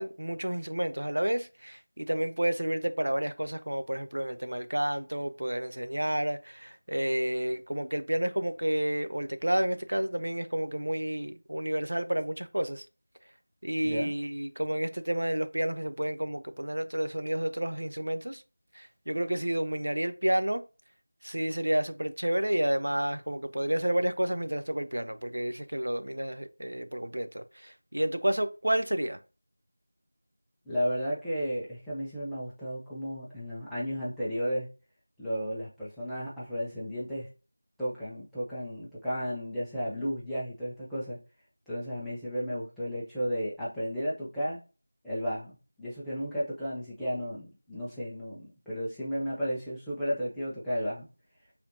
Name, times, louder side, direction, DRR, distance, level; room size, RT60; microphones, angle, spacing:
voice 1, 0.0-12.8 13.6-18.4 18.7-20.6 21.2-29.2, right 1 dB, 80° right, 0.5 m, -30 dB
voice 2, 30.7-34.7 35.2-37.3 37.8-41.2 41.7-44.6 45.0-51.1, equal, ahead, 0.7 m, -33 dB
4.6 x 3.4 x 2.6 m
figure-of-eight pair, 175°, 0 cm